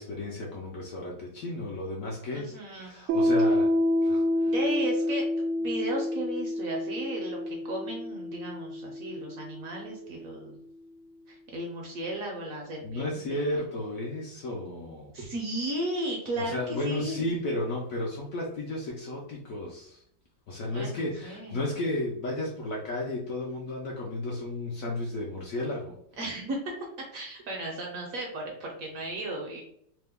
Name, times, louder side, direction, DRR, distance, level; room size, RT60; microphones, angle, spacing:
voice 1, 0.0-3.7 4.0-4.5 12.8-15.1 16.4-20.0 20.5-26.0, left 1 dB, 70° left, -2 dB, 0.8 m, -33 dB
voice 2, 2.3-3.1 4.5-5.3 5.6-10.6 11.3-13.6 15.1-17.3 20.7-21.6 26.2-26.7 27.0-29.6, right 1 dB, 65° right, 0 dB, 0.9 m, -35 dB
Piano, 3.1-10.3, left 1 dB, 90° right, 0.6 m, -28 dB
3.0 x 2.1 x 3.4 m, 0.70 s
omnidirectional pair, 1.9 m